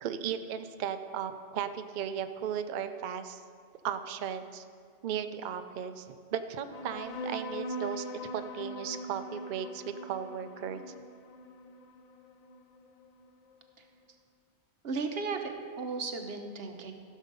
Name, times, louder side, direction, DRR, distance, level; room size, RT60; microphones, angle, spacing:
voice 1, 0.0-3.4 3.8-4.6 5.0-10.8, right 8 dB, 75° right, 9 dB, 0.4 m, -36 dB
sound 1, 6.7-13.7, equal, 70° left, 0.3 m, -42 dB
voice 2, 14.8-16.9, right 4 dB, 50° right, 5 dB, 1.0 m, -35 dB
15.0 x 6.3 x 5.3 m, 2.1 s
omnidirectional pair, 1.4 m